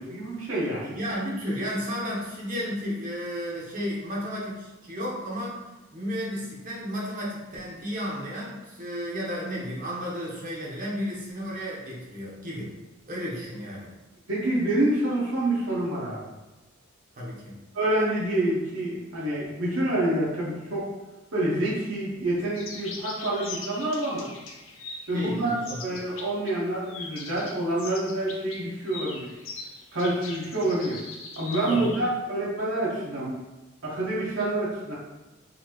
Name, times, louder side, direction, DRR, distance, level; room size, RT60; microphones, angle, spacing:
voice 1, 0.0-0.9 14.3-16.3 17.7-20.9 21.3-24.3 25.1-29.3 29.9-31.0 31.4-33.4 33.8-35.0, right 1 dB, 75° right, -6 dB, 1.1 m, -27 dB
voice 2, 0.8-5.6 5.9-12.7 13.1-13.9 17.2-17.5 25.1-25.8 31.6-31.9, equal, 45° right, -5 dB, 0.9 m, -33 dB
sound 1, 22.6-26.5 26.9-32.0, left 4 dB, 85° left, 0.6 m, -41 dB
3.9 x 2.8 x 2.9 m, 1.1 s
head